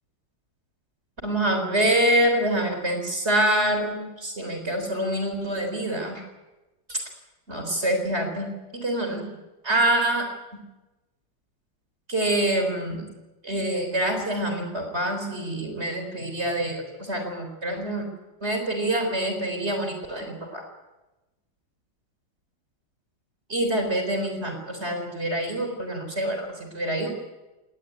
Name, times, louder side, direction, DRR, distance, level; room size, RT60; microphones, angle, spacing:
voice 1, 1.2-6.2 6.9-7.0 7.5-9.3 9.6-10.3 12.1-13.0 13.4-18.1 18.4-20.6 23.5-26.5 26.7-27.1, right 1 dB, 35° right, 4 dB, 4.1 m, -26 dB
19.0 x 18.5 x 9.5 m, 1.1 s
omnidirectional pair, 1.9 m